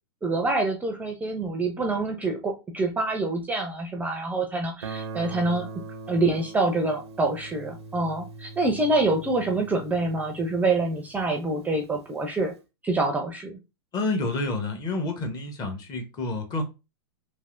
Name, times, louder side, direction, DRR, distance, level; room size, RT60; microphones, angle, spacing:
voice 1, 0.2-5.7 6.1-12.5 12.8-13.6, right 2 dB, 10° right, 0.5 m, -26 dB
Guitar, 4.8-11.5, right 3 dB, 80° right, 0.5 m, -41 dB
voice 2, 13.9-16.6, left 2 dB, 30° left, 0.9 m, -29 dB
3.3 x 2.7 x 2.5 m
hypercardioid pair, 105°, 14 cm